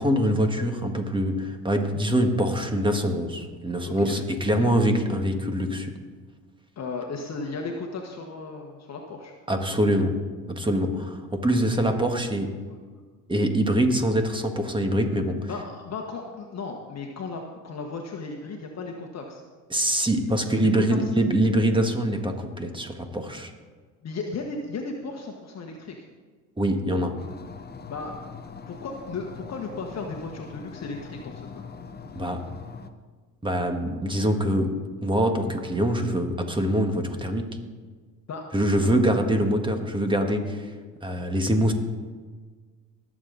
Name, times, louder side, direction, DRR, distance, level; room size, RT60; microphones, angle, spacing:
voice 1, 0.0-5.9 9.5-10.2 10.5-12.6 13.3-15.5 19.7-23.5 26.6-27.2 32.1-32.4 33.4-37.6 38.5-40.7 41.0-41.7, right 1 dB, 10° right, 5 dB, 1.7 m, -24 dB
voice 2, 3.9-4.2 4.6-4.7 6.8-9.3 11.7-11.9 12.7-12.8 15.5-19.4 20.6-21.0 24.0-26.1 27.9-28.2 28.7-31.6 38.3-38.4, left 4 dB, 40° left, 2 dB, 1.4 m, -35 dB
sound 1, 27.2-32.9, left 5 dB, 25° left, 0.9 m, -42 dB
20.0 x 7.5 x 4.0 m, 1.5 s
supercardioid pair, 85°, 41 cm